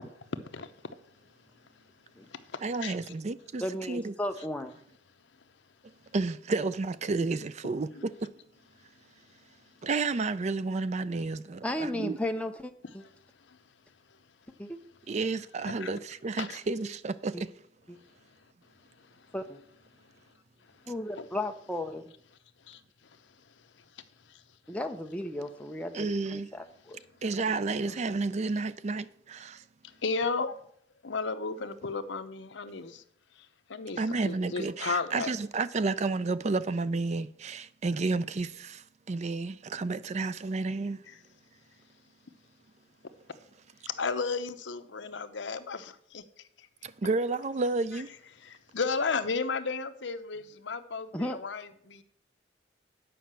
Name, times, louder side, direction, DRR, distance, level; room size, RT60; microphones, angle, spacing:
voice 1, 2.6-4.1 6.1-8.3 9.8-12.2 15.1-17.5 25.9-26.5 27.2-29.6 34.0-41.0 46.8-48.1, right 3 dB, 35° right, 0.4 m, -31 dB
voice 2, 3.6-4.7 11.6-13.0 14.6-14.8 17.3-17.4 17.9-18.0 19.3-19.6 20.9-22.0 24.7-27.0 27.8-27.9 51.1-51.4, left 1 dB, 5° left, 0.7 m, -35 dB
voice 3, 30.0-30.5 31.0-33.0 33.7-35.3 44.0-46.2 48.4-52.0, left 4 dB, 70° left, 0.8 m, -33 dB
9.3 x 5.6 x 7.5 m
head